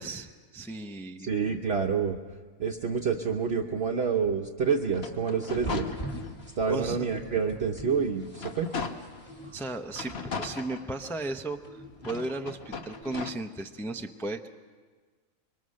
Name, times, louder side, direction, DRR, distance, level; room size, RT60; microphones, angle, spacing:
voice 1, 0.0-1.3 6.7-7.1 9.5-14.5, right 2 dB, ahead, 5 dB, 0.6 m, -35 dB
voice 2, 1.2-2.2 2.6-5.9 6.6-8.7, right 6 dB, 50° right, 2 dB, 1.1 m, -28 dB
sound 1, 4.8-6.5 7.0-7.1 7.6-9.3 9.9-11.4 12.0-13.3, left 5 dB, 50° left, 1.2 m, -38 dB
sound 2, 5.5-13.0, equal, 35° left, 5.1 m, -43 dB
25.0 x 23.0 x 6.4 m, 1.5 s
omnidirectional pair, 1.4 m